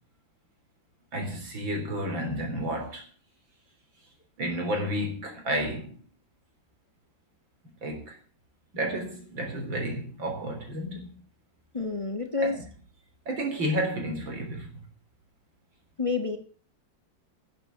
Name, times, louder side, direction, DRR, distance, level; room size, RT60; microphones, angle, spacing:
voice 1, 1.1-3.0 4.4-6.0 7.8-8.2 8.7-11.1 12.4-12.6 13.3-14.7, equal, 85° right, 4.5 m, -31 dB
voice 2, 11.7-12.6 16.0-16.4, left 4 dB, 20° left, 1.0 m, -28 dB
12.5 x 7.7 x 7.8 m
omnidirectional pair, 2.0 m